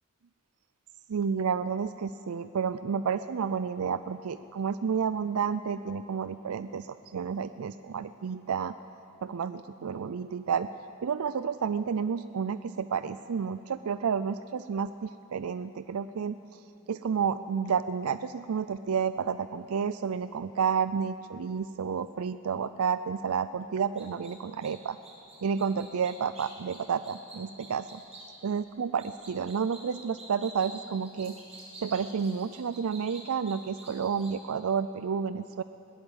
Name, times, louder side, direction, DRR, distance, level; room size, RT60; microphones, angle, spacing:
voice 1, 1.1-8.7 9.2-10.7 11.0-16.6 16.9-25.0 25.4-28.0 28.4-31.3 31.8-35.6, right 6 dB, 80° right, 13 dB, 0.4 m, -30 dB
sound 1, 24.0-24.3 24.6-24.7 25.0-28.3 29.0-34.3, right 2 dB, 30° right, 6.2 m, -48 dB
21.5 x 17.5 x 8.1 m, 2.8 s
head